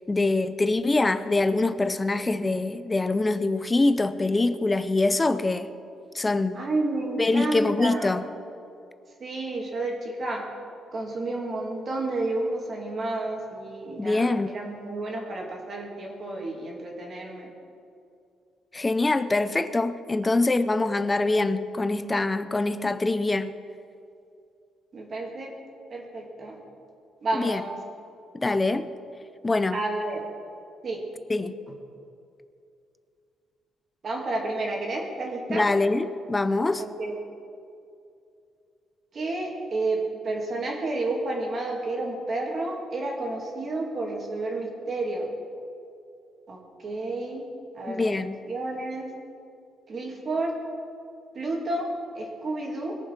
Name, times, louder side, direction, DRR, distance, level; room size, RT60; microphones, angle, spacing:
voice 1, 0.1-5.7 6.1-6.6 7.2-8.2 14.0-14.5 18.7-23.5 27.3-27.6 28.3-28.9 29.4-29.8 31.3-31.5 35.5-36.8 47.9-48.4, left 2 dB, 15° left, 0.6 m, -24 dB
voice 2, 6.5-8.2 9.2-10.4 10.9-17.5 24.9-25.5 25.9-26.6 27.2-27.8 29.7-30.2 30.8-31.0 34.0-35.7 36.8-37.2 39.1-45.3 46.5-47.4 47.7-48.1 48.5-49.1 49.9-50.5 51.3-51.9 52.1-53.0, right 2 dB, 40° right, 2.6 m, -30 dB
21.5 x 7.2 x 6.0 m
cardioid pair, 140°, 0 cm